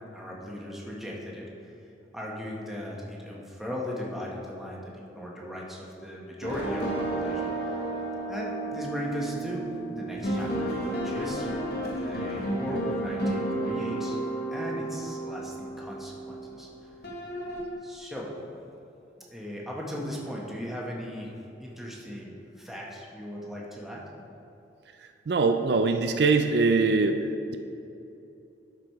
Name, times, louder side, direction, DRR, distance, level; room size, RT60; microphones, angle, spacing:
voice 1, 0.1-1.5 2.1-7.8 8.3-11.5 11.8-14.2 14.5-16.7 17.8-18.3 19.3-21.3 21.6-24.0, equal, ahead, -4 dB, 1.2 m, -37 dB
sound 1, 6.4-16.7 17.0-17.6, right 1 dB, 60° left, 1.5 m, -32 dB
voice 2, 25.3-27.2, right 4 dB, 60° right, 6 dB, 0.4 m, -22 dB
12.0 x 4.8 x 4.7 m, 2.8 s
head